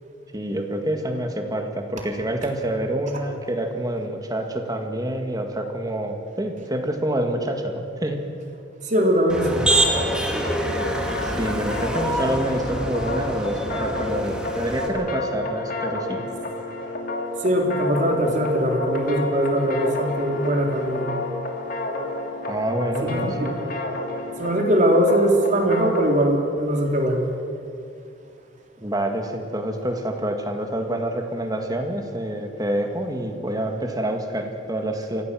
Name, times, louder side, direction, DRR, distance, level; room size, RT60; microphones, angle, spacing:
voice 1, 0.3-8.2 11.2-16.2 22.5-23.6 28.8-35.2, right 1 dB, 20° right, 4 dB, 2.0 m, -27 dB
voice 2, 8.8-9.7 17.4-21.1 23.0-23.5 24.4-27.3, right 1 dB, 45° right, 1 dB, 3.5 m, -21 dB
Motor vehicle (road), 9.3-14.9, right 1 dB, 5° right, 2.3 m, -26 dB
sound 1, 9.6-26.3, left 2 dB, 50° left, 2.7 m, -30 dB
24.0 x 16.5 x 7.6 m, 2.5 s
head